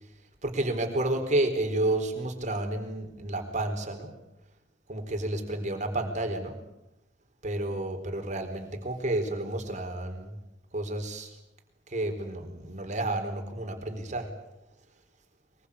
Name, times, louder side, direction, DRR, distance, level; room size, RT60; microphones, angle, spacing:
voice 1, 0.4-4.1 4.9-6.6 7.4-10.4 10.7-11.3 11.9-14.3, right 1 dB, 40° right, 5 dB, 4.1 m, -30 dB
23.5 x 22.0 x 8.5 m, 0.89 s
head